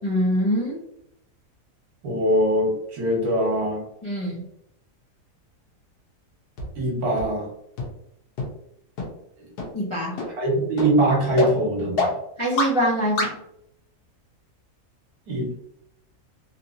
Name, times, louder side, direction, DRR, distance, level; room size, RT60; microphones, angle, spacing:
voice 1, 0.0-0.8 4.0-4.4 9.7-10.2 12.4-13.4, equal, 35° left, -6 dB, 0.4 m, -24 dB
voice 2, 2.0-3.8 6.7-7.5 10.4-12.1 15.3-15.5, right 1 dB, 70° right, -2 dB, 1.5 m, -22 dB
sound 1, 6.6-6.7 7.2-7.3 7.8-7.9 8.4-8.5 9.0-9.1 9.6-9.7 10.2-10.3 10.8-10.9 11.4-11.5 12.0-12.1 12.6-12.7 13.2-13.3, left 2 dB, 80° left, 1.4 m, -24 dB
3.4 x 2.8 x 2.6 m, 0.76 s
omnidirectional pair, 1.7 m